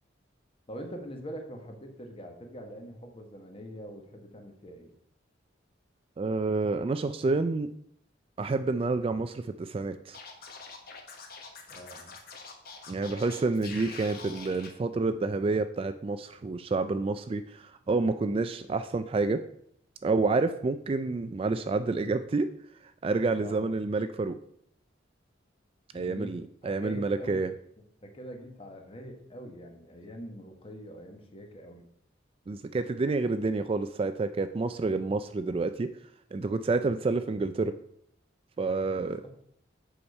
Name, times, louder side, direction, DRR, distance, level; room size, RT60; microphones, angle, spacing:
voice 1, 0.7-4.9 11.7-12.2 23.4-23.7 25.9-26.4 26.6-27.5 28.0-31.8 38.9-39.3, equal, 30° left, 4 dB, 1.2 m, -44 dB
voice 2, 6.2-7.7 8.4-10.2 12.9-19.4 20.0-22.5 23.0-24.4 25.9-27.5 32.5-35.9 36.3-37.7 38.6-39.2, right 3 dB, 30° right, 10 dB, 0.3 m, -29 dB
Scratching (performance technique), 10.1-14.7, left 4 dB, 50° left, 1.2 m, -45 dB
7.1 x 5.0 x 5.3 m, 0.69 s
head